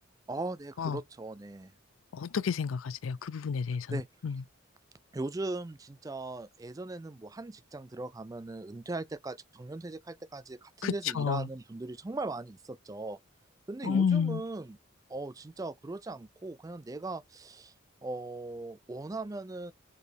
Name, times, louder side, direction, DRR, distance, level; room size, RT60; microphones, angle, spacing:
voice 1, 0.3-1.7 3.9-4.1 5.1-13.2 13.7-14.8 15.1-17.7 18.0-19.7, right 2 dB, 15° right, 0.3 m, -39 dB
voice 2, 2.1-4.4 10.8-11.5 13.8-14.4, left 6 dB, 75° left, 0.4 m, -30 dB
5.0 x 4.4 x 4.4 m
head